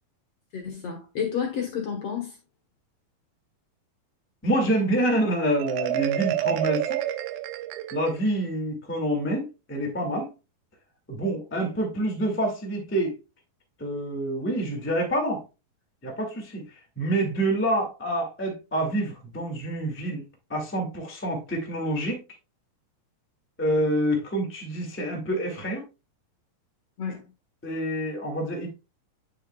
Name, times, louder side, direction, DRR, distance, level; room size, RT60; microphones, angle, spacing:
voice 1, 0.5-2.4 27.0-27.3, left 7 dB, 60° left, 1.9 m, -30 dB
voice 2, 4.4-7.0 7.9-10.3 11.1-13.1 13.8-15.4 16.0-16.6 16.9-20.2 20.5-22.2 23.6-25.8 27.6-28.7, right 1 dB, 10° left, 0.8 m, -27 dB
Marimba xylophone, 5.6-8.4, right 13 dB, 80° right, 2.5 m, -28 dB
8.9 x 7.2 x 2.3 m
omnidirectional pair, 4.3 m